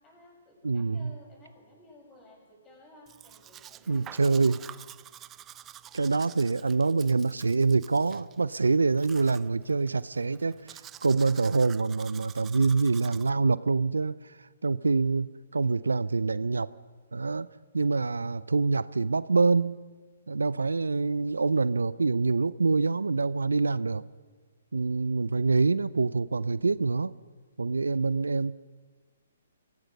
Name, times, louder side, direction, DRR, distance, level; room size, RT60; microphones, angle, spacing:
voice 1, 0.0-4.7, left 1 dB, 20° left, -1 dB, 7.8 m, -55 dB
voice 2, 0.6-1.2 3.9-4.6 5.9-16.7 17.1-17.5 17.7-19.8 20.3-24.0 24.7-27.1 27.6-28.5, right 4 dB, 75° right, 18 dB, 0.6 m, -26 dB
Domestic sounds home sounds, 3.1-13.3, right 11 dB, 20° right, 0.5 m, -49 dB
25.0 x 17.5 x 6.5 m, 1.4 s
figure-of-eight pair, 125°, 0 cm